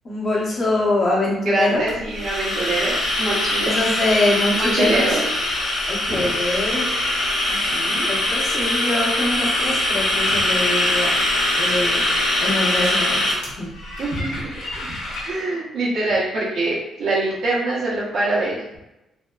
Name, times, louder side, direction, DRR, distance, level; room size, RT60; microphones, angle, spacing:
voice 1, 0.0-1.8 3.7-5.2 5.9-6.9 8.0-11.1 11.6-12.0 12.4-13.2 13.5-13.7, left 2 dB, 45° left, -5 dB, 0.9 m, -23 dB
voice 2, 1.4-3.7 4.5-5.2 6.1-6.3 7.5-8.1 14.0-14.9 15.2-18.7, right 2 dB, 70° right, -7 dB, 0.8 m, -24 dB
sound 1, 1.9-15.3, left 1 dB, 90° left, 0.9 m, -22 dB
2.6 x 2.2 x 2.3 m, 0.94 s
cardioid pair, 90°, 0 cm